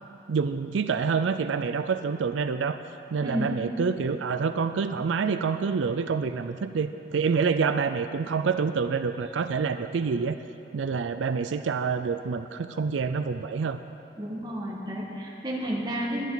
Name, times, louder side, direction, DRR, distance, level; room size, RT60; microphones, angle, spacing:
voice 1, 0.3-2.8 3.1-10.4 10.7-13.8, right 5 dB, 90° right, 10 dB, 0.4 m, -27 dB
voice 2, 3.2-3.5 14.2-16.3, equal, 20° right, -4 dB, 1.8 m, -31 dB
22.5 x 9.3 x 4.0 m, 2.9 s
head